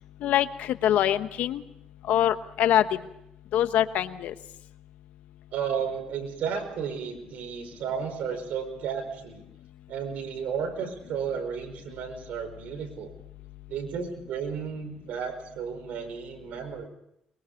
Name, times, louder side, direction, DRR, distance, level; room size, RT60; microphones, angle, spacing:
voice 1, 0.2-1.6 2.1-2.8 3.5-4.3, left 11 dB, 75° left, 11 dB, 1.2 m, -24 dB
voice 2, 5.5-9.4 9.9-13.1 13.7-16.9, right 7 dB, 75° right, 7 dB, 4.9 m, -33 dB
23.5 x 23.0 x 5.4 m, 0.78 s
cardioid pair, 95°, 3 cm